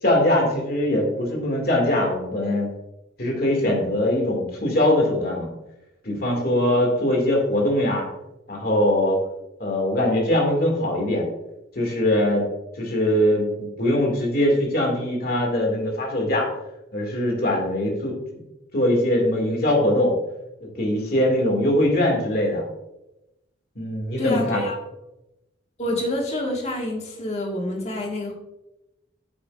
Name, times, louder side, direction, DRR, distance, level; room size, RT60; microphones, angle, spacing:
voice 1, 0.0-2.7 3.2-5.5 6.0-8.1 8.5-9.2 9.6-11.2 11.8-12.4 12.8-16.5 16.9-18.2 18.7-20.1 20.6-22.6 23.8-24.6, left 1 dB, 55° left, 0 dB, 2.2 m, -22 dB
voice 2, 24.2-24.8 25.8-28.3, left 1 dB, 40° left, 0 dB, 1.6 m, -27 dB
8.0 x 7.7 x 2.5 m, 0.92 s
head